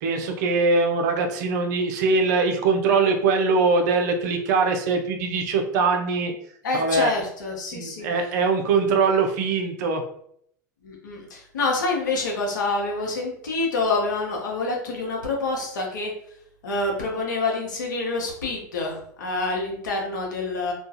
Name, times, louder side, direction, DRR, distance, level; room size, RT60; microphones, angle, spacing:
voice 1, 0.0-6.3 6.7-7.1 7.7-10.0, right 4 dB, 65° right, 4 dB, 0.5 m, -22 dB
voice 2, 6.6-8.1 10.8-16.1 16.6-20.7, left 3 dB, 85° left, 0 dB, 0.8 m, -27 dB
2.4 x 2.3 x 2.7 m, 0.67 s
hypercardioid pair, 90°, 10 cm